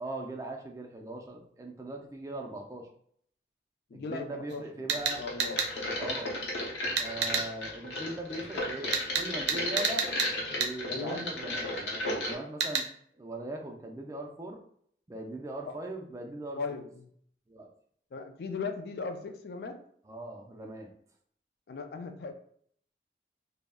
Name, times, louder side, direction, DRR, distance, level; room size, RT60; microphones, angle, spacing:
voice 1, 0.0-2.9 3.9-5.2 6.0-6.4 6.9-10.1 10.5-12.9 13.1-14.6 15.1-16.8 17.5-17.7 20.1-20.9, right 2 dB, 15° right, 2 dB, 0.3 m, -40 dB
voice 2, 3.9-5.6 10.9-11.3 15.7-15.8 16.5-17.1 18.1-19.8 21.7-22.3, left 4 dB, 65° left, 6 dB, 0.3 m, -38 dB
sound 1, 4.5-4.6 4.9-5.7 7.0-7.5 8.9-10.3 10.6-10.7 12.6-12.9, right 6 dB, 85° right, 0.5 m, -29 dB
sound 2, 5.1-12.3, left 1 dB, 85° left, 0.7 m, -34 dB
2.3 x 2.0 x 3.4 m, 0.63 s
head